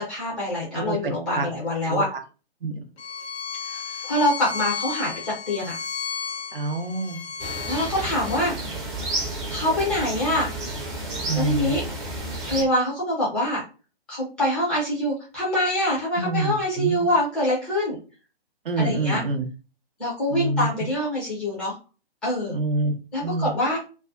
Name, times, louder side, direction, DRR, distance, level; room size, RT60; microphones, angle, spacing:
voice 1, 0.0-2.1 3.6-5.8 7.7-8.5 9.5-10.5 11.3-11.8 12.5-13.6 14.1-18.0 18.8-19.2 20.0-21.8 22.2-22.5 23.1-23.8, left 1 dB, 5° left, -6 dB, 0.4 m, -25 dB
voice 2, 0.7-1.5 1.8-2.2 2.6-2.8 6.5-7.2 11.3-11.8 16.2-17.1 18.6-19.4 20.3-20.7 22.5-22.9 23.2-23.5, right 2 dB, 60° right, 7 dB, 0.7 m, -26 dB
Bowed string instrument, 3.0-8.4, left 6 dB, 90° left, 0.5 m, -33 dB
sound 1, 7.4-12.6, right 2 dB, 25° right, 0.8 m, -31 dB
2.4 x 2.2 x 2.4 m, 0.33 s
figure-of-eight pair, 135°, 30 cm